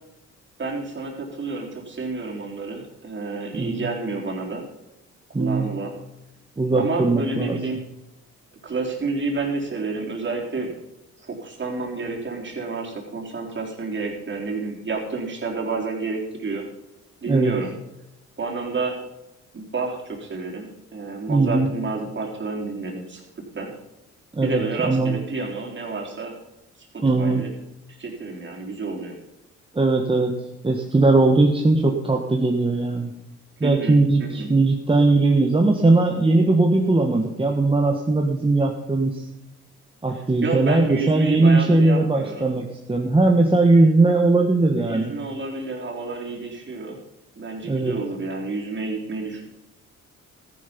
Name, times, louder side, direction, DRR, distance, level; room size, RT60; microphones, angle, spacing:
voice 1, 0.6-4.6 5.4-5.9 6.7-7.8 8.6-10.7 11.2-16.6 17.2-17.7 18.4-19.0 19.5-23.2 23.6-23.7 24.4-26.3 26.9-27.5 28.0-29.2 33.6-34.5 40.1-42.5 44.8-47.0 47.4-49.5, right 3 dB, 40° right, 0 dB, 3.9 m, -30 dB
voice 2, 5.3-5.7 6.6-7.6 17.2-17.5 21.3-21.7 24.3-25.2 27.0-27.5 29.7-30.3 30.6-33.1 33.6-39.2 40.0-45.1 47.7-48.0, right 2 dB, 20° right, 1 dB, 1.5 m, -19 dB
14.0 x 10.5 x 5.3 m, 0.91 s
cardioid pair, 90°, 30 cm